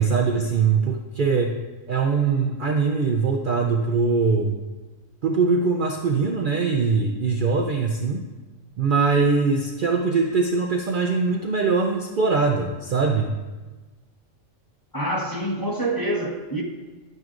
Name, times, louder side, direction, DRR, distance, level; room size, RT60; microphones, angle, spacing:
voice 1, 0.0-1.5 1.9-4.6 5.2-8.2 8.8-13.3, right 4 dB, 55° right, 2 dB, 0.6 m, -22 dB
voice 2, 14.9-16.6, right 1 dB, 20° left, -1 dB, 1.1 m, -26 dB
10.5 x 9.1 x 2.5 m, 1.2 s
omnidirectional pair, 1.3 m